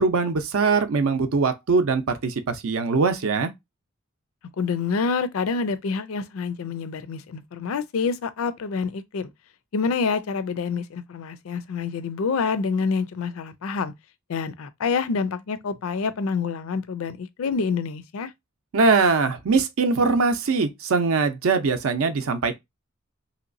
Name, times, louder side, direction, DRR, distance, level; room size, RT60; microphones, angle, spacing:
voice 1, 0.0-3.5 18.7-22.6, right 4 dB, 65° right, 0.5 m, -22 dB
voice 2, 4.6-9.3 9.7-13.9 14.3-18.3, left 5 dB, 65° left, 0.4 m, -27 dB
3.1 x 2.8 x 2.6 m
head